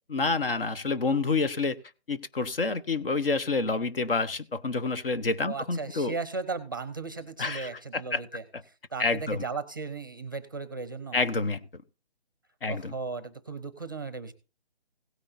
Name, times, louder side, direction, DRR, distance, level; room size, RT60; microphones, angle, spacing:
voice 1, 0.1-1.8 2.1-6.1 7.4-8.2 9.0-9.4 11.1-11.6 12.6-12.9, left 3 dB, 60° left, 1.0 m, -28 dB
voice 2, 5.4-11.2 12.7-14.3, right 4 dB, 20° right, 0.6 m, -36 dB
16.5 x 9.7 x 2.7 m
hypercardioid pair, 170°, 32 cm